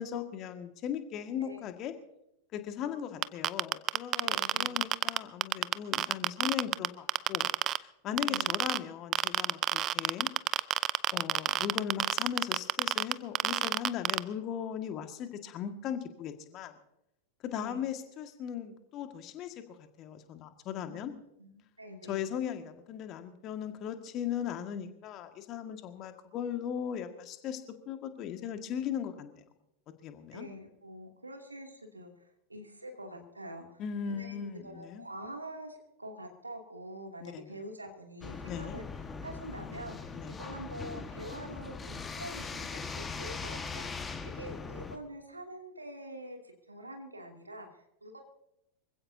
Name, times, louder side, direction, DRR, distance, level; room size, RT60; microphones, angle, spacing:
voice 1, 0.0-1.9 2.5-7.5 7.8-10.3 11.1-16.8 17.4-21.1 22.1-27.6 27.9-29.4 30.0-30.5 33.8-35.0 37.2-37.5 38.5-38.8 40.1-40.4, left 9 dB, 35° left, 7 dB, 1.8 m, -38 dB
voice 2, 1.4-1.7 4.2-4.8 8.1-8.6 17.5-17.9 20.8-22.2 30.3-38.9 39.2-48.2, right 1 dB, 80° right, 3 dB, 2.6 m, -46 dB
sound 1, 3.2-7.8 8.2-8.8 9.1-14.2, right 12 dB, 30° right, 0.5 m, -27 dB
sound 2, 38.2-45.0, left 4 dB, 15° left, 1.5 m, -40 dB
25.5 x 16.0 x 2.7 m, 0.84 s
figure-of-eight pair, 90°, 0 cm